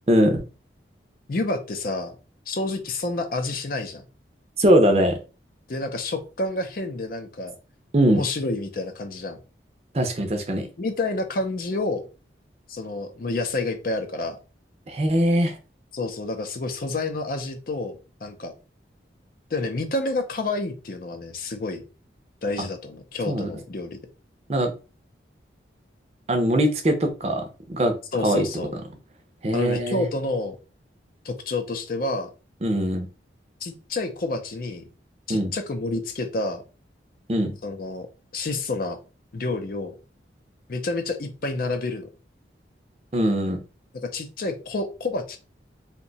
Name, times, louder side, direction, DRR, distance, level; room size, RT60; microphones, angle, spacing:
voice 1, 0.1-0.4 4.6-5.2 7.9-8.2 9.9-10.7 14.9-15.6 23.3-23.5 24.5-24.7 26.3-27.9 28.2-28.5 29.4-30.0 32.6-33.1 35.3-35.5 37.3-37.5 43.1-43.6, right 1 dB, 35° right, 5 dB, 0.5 m, -21 dB
voice 2, 1.3-2.1 2.5-4.1 5.7-7.5 8.1-9.4 10.8-12.0 12.7-14.4 15.9-18.5 19.5-21.8 22.4-24.0 28.1-28.7 29.5-30.6 31.2-32.3 33.6-34.8 35.3-36.6 37.6-38.1 38.3-39.0 39.3-39.9 40.7-42.1 44.0-45.4, left 2 dB, 50° left, 7 dB, 0.5 m, -29 dB
2.7 x 2.2 x 3.9 m, 0.33 s
head